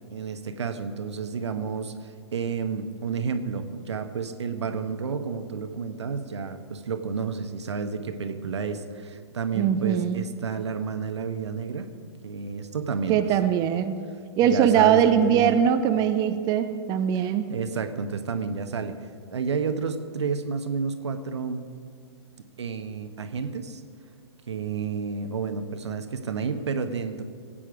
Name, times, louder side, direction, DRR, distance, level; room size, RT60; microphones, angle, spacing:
voice 1, 0.1-11.9 12.2-13.3 14.4-15.5 17.5-19.0 19.3-21.7 22.6-23.8 24.5-27.2, right 5 dB, 75° right, 8 dB, 1.0 m, -30 dB
voice 2, 9.6-10.2 13.1-14.0 14.4-17.5, right 9 dB, 25° right, 7 dB, 0.6 m, -21 dB
16.5 x 8.7 x 4.9 m, 2.2 s
hypercardioid pair, 125°, 15 cm